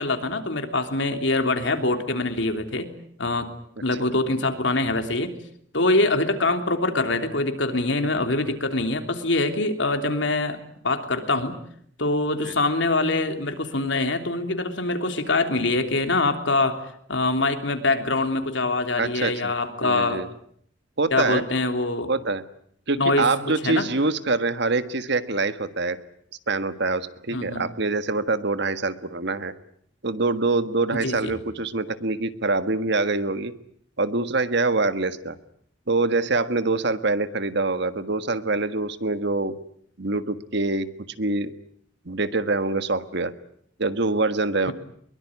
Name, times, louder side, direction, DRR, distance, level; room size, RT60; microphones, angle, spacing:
voice 1, 0.0-2.9 3.2-3.5 3.8-5.3 5.7-10.6 10.8-11.5 12.0-16.8 17.1-20.2 21.1-22.1 23.0-23.9 27.3-27.7 30.9-31.3 44.7-44.8, left 2 dB, 70° left, 7 dB, 3.3 m, -24 dB
voice 2, 19.0-19.5 19.8-20.3 21.0-21.4 22.1-22.4 22.9-26.0 26.5-29.5 30.0-33.5 34.0-35.4 35.9-39.5 40.0-40.9 41.2-41.5 42.0-43.3 43.8-44.7, right 3 dB, 65° right, 11 dB, 1.6 m, -25 dB
23.0 x 22.5 x 9.7 m, 0.66 s
head